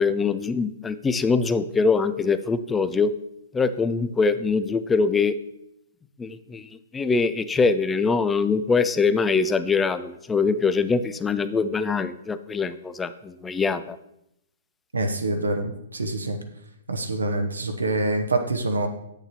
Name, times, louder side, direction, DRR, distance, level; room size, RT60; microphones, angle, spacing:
voice 1, 0.0-3.1 3.5-5.3 6.2-14.0, left 4 dB, 10° left, 12 dB, 0.4 m, -23 dB
voice 2, 14.9-16.4 16.9-18.9, right 2 dB, 80° right, 5 dB, 0.8 m, -26 dB
7.9 x 6.6 x 2.9 m, 0.79 s
figure-of-eight pair, 120°, 0 cm